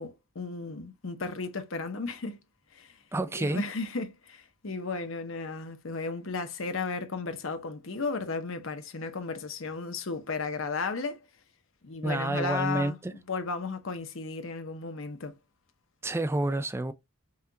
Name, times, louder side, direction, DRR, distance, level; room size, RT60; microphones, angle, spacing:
voice 1, 0.0-2.4 2.7-3.0 3.3-11.2 11.8-13.0 13.3-15.3, left 4 dB, 60° left, 0.8 m, -34 dB
voice 2, 3.1-3.6 12.0-13.1 16.0-16.9, right 2 dB, 10° right, 0.3 m, -29 dB
5.6 x 2.4 x 2.8 m
head